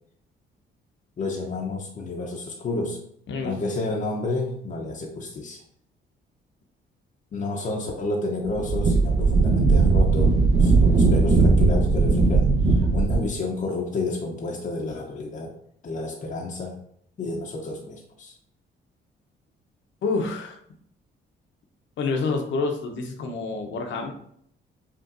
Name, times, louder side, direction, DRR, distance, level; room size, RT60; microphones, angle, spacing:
voice 1, 1.2-3.0 3.4-5.6 7.3-10.3 10.6-15.5 15.8-16.8 17.2-18.3, left 2 dB, 40° left, -1 dB, 0.7 m, -30 dB
voice 2, 3.3-3.6 20.0-20.5 22.0-24.1, left 4 dB, 70° left, 3 dB, 0.9 m, -27 dB
Wind, 8.4-13.3, right 3 dB, 55° right, 1.1 m, -18 dB
5.3 x 2.6 x 2.5 m, 0.67 s
cardioid pair, 90°, 20 cm